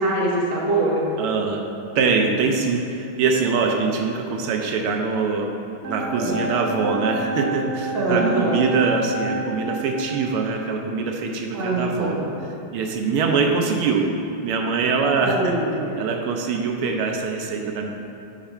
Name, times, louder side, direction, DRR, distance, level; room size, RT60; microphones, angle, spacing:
voice 1, 0.0-1.0 6.1-6.4 7.9-8.6 11.5-12.4 15.2-16.0, right 2 dB, 30° right, -4 dB, 1.3 m, -23 dB
voice 2, 1.2-1.6 1.9-5.5 5.9-12.2 12.7-14.1 14.4-15.5 16.0-17.9, right 4 dB, 85° right, 2 dB, 1.6 m, -23 dB
sound 1, 5.8-9.9, right 2 dB, 50° right, 1.5 m, -29 dB
8.8 x 5.9 x 4.3 m, 2.8 s
omnidirectional pair, 2.4 m